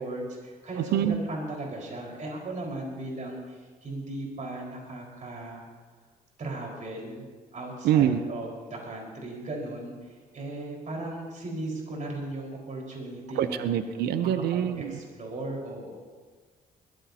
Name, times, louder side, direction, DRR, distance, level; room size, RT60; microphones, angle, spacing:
voice 1, 0.0-5.6 6.4-7.2 7.5-13.6 14.2-15.9, right 2 dB, 50° right, -1 dB, 4.8 m, -37 dB
voice 2, 7.8-8.2 13.4-15.0, right 10 dB, 80° right, 11 dB, 0.6 m, -25 dB
21.5 x 15.0 x 2.9 m, 1.4 s
supercardioid pair, 65°, 16 cm